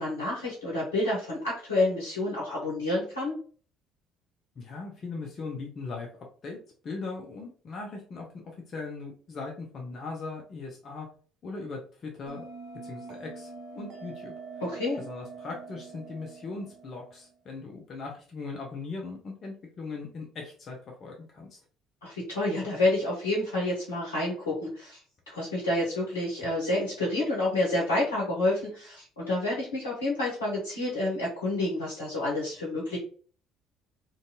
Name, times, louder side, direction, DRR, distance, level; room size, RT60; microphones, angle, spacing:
voice 1, 0.0-3.3 14.6-15.0 22.0-25.0 25.3-33.0, left 2 dB, 85° left, -5 dB, 0.8 m, -29 dB
voice 2, 4.6-6.1 6.4-6.6 6.8-11.1 11.4-12.4 12.8-14.3 15.0-21.6, left 3 dB, 45° left, 0 dB, 0.6 m, -39 dB
Bell, 12.3-17.3, right 4 dB, 60° right, 0.6 m, -44 dB
2.6 x 2.3 x 2.7 m, 0.44 s
hypercardioid pair, 55°, 0 cm